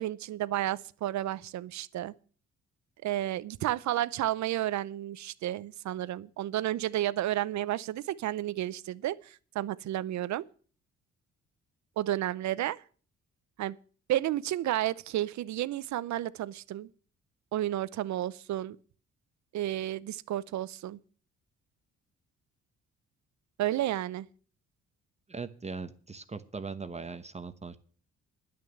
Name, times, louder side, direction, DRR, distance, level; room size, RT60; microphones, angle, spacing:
voice 1, 0.0-2.1 3.0-10.5 12.0-12.8 13.6-13.8 14.1-16.9 17.5-18.8 19.5-21.0 23.6-24.3, right 13 dB, 70° right, 0.7 m, -32 dB
voice 2, 25.3-27.8, right 4 dB, 20° right, 1.0 m, -40 dB
11.0 x 6.5 x 9.2 m
cardioid pair, 90°, 30 cm